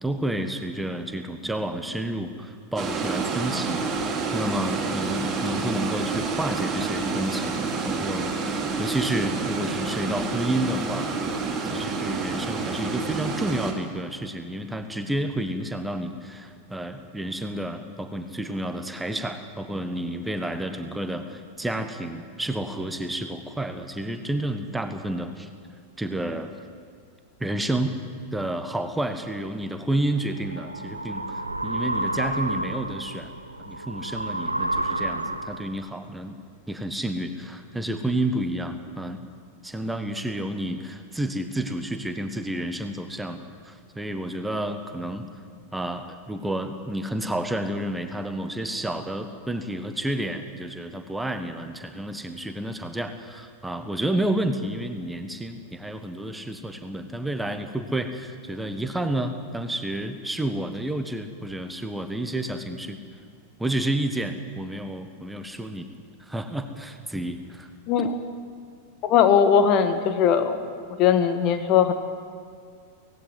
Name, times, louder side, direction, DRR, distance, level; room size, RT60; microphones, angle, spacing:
voice 1, 0.0-8.5 8.8-11.1 11.6-25.5 26.0-26.5 27.4-28.0 28.3-33.3 33.6-36.4 36.7-39.2 39.6-45.3 45.7-63.0 63.6-65.9 66.3-67.7, right 1 dB, 5° right, 7 dB, 1.5 m, -30 dB
sound 1, 2.8-13.7, right 4 dB, 20° right, 2.9 m, -28 dB
sound 2, 30.0-35.8, right 1 dB, 85° right, 0.8 m, -30 dB
voice 2, 69.0-70.6 71.0-71.9, left 8 dB, 40° left, 9 dB, 1.5 m, -19 dB
18.0 x 16.0 x 9.3 m, 2.2 s
figure-of-eight pair, 90°, 0 cm